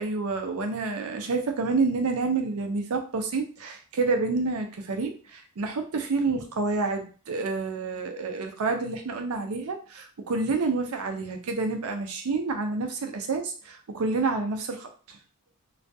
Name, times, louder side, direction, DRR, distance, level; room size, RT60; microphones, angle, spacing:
voice 1, 0.0-15.2, right 3 dB, 75° right, 5 dB, 0.5 m, -28 dB
2.4 x 2.2 x 2.6 m, 0.37 s
head